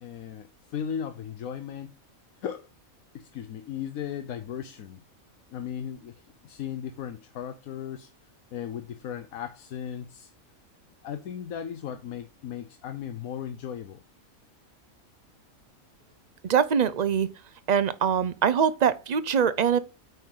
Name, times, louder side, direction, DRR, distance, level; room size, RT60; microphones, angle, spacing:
voice 1, 0.0-1.9 2.4-2.7 3.1-5.0 5.5-8.1 8.5-10.3 11.0-14.0, left 9 dB, 85° left, 1.2 m, -36 dB
voice 2, 16.4-17.3 17.7-19.8, right 7 dB, 45° right, 0.6 m, -23 dB
9.0 x 5.5 x 3.9 m
omnidirectional pair, 1.4 m